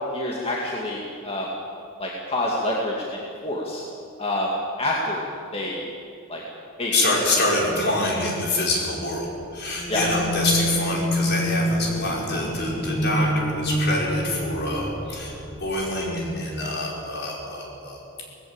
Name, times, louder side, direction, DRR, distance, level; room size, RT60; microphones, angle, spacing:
voice 1, 0.1-1.5 2.0-3.8 4.2-4.5 4.8-5.3 5.5-5.8 6.3-6.4 6.8-7.1 9.9-10.1, left 1 dB, 30° left, -3 dB, 2.2 m, -27 dB
voice 2, 6.9-18.0, left 2 dB, 55° left, -2 dB, 5.2 m, -26 dB
sound 1, 9.7-15.7, equal, 85° left, 6.5 m, -27 dB
18.5 x 16.0 x 8.9 m, 2.5 s
head